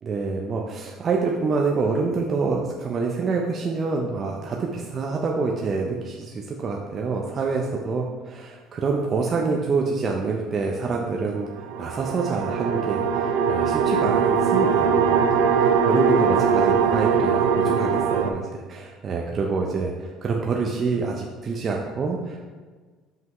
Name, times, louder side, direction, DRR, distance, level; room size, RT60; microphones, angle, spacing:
voice 1, 0.0-11.5 11.8-22.4, right 4 dB, 40° right, 0 dB, 0.6 m, -27 dB
sound 1, 11.5-18.3, right 6 dB, 90° right, 0.4 m, -21 dB
5.6 x 5.5 x 3.1 m, 1.4 s
supercardioid pair, 95°, 0 cm